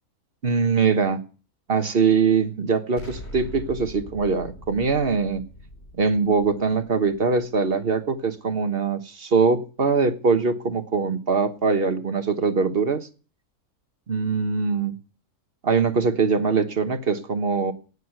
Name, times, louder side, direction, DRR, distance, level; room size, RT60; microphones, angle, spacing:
voice 1, 0.4-1.2 1.7-5.4 6.0-13.1 14.1-14.9 15.6-17.7, right 5 dB, 40° right, 1.4 m, -22 dB
Explosion, 3.0-7.8, equal, 40° left, 4.0 m, -42 dB
18.0 x 6.7 x 7.8 m
omnidirectional pair, 1.6 m